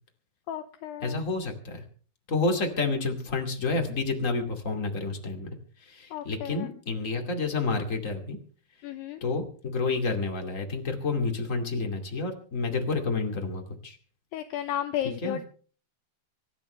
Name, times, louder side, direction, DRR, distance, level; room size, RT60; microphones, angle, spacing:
voice 1, 0.5-1.2 6.1-6.7 8.8-9.2 14.3-15.5, left 11 dB, 80° left, 8 dB, 2.6 m, -33 dB
voice 2, 1.0-1.8 2.3-5.5 5.8-8.4 9.2-14.0 15.2-15.4, left 3 dB, 30° left, 3 dB, 1.5 m, -29 dB
26.0 x 12.0 x 3.3 m, 0.41 s
omnidirectional pair, 5.4 m